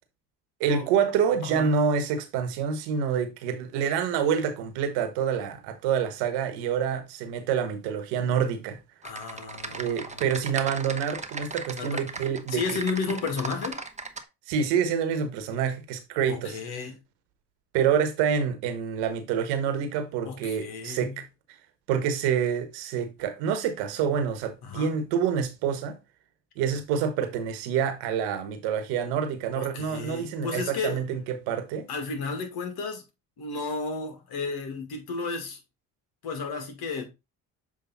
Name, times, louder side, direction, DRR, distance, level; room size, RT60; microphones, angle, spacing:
voice 1, 0.6-8.8 9.7-12.6 14.5-16.6 17.7-21.1 21.9-26.0 26.6-31.9, right 7 dB, 85° right, 1.3 m, -27 dB
voice 2, 1.4-1.8 9.0-10.6 11.7-12.1 12.5-13.8 16.3-17.0 20.3-21.2 24.6-25.0 29.5-31.0 31.9-33.0 33.4-35.6 36.2-37.0, left 4 dB, 65° left, 2.2 m, -33 dB
Typing, 9.0-14.2, right 3 dB, 20° right, 1.0 m, -37 dB
7.4 x 3.5 x 4.0 m
supercardioid pair, 65°, 39 cm